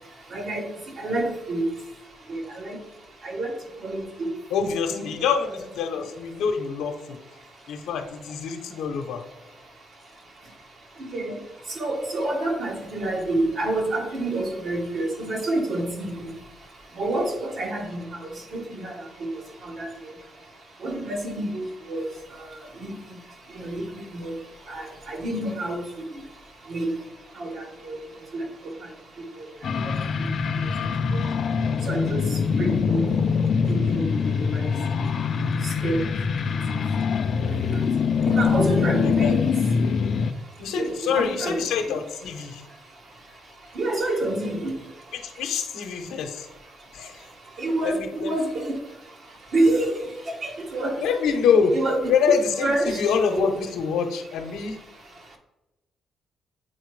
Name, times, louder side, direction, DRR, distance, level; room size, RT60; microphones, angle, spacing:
voice 1, 0.3-0.6 1.0-1.6 2.3-2.7 3.2-3.5 3.8-4.3 4.6-5.1 11.0-11.4 11.8-16.1 17.0-18.0 18.5-18.9 19.8-19.9 20.8-22.0 22.8-23.0 23.6-23.8 24.1-24.3 24.7-25.8 26.7-26.9 27.4-28.0 28.3-28.4 29.8-29.9 31.9-32.3 32.6-33.0 33.7-34.0 35.8-36.1 38.3-39.5 40.8-41.5 43.8-44.7 47.6-48.0 48.2-48.7 49.5-50.0 50.4-50.9 51.7-52.0 52.6-53.0 53.2-53.5, right 2 dB, 55° right, 2 dB, 1.3 m, -27 dB
voice 2, 4.5-7.2 7.7-9.2 39.0-39.3 40.6-42.6 45.1-46.5 46.9-47.2 47.8-48.4 51.0-51.8 52.1-54.8, left 6 dB, 90° left, 5 dB, 0.8 m, -25 dB
sound 1, 29.6-40.3, left 6 dB, 55° left, 0.4 m, -24 dB
7.7 x 4.4 x 3.2 m, 1.0 s
cardioid pair, 115°, 0 cm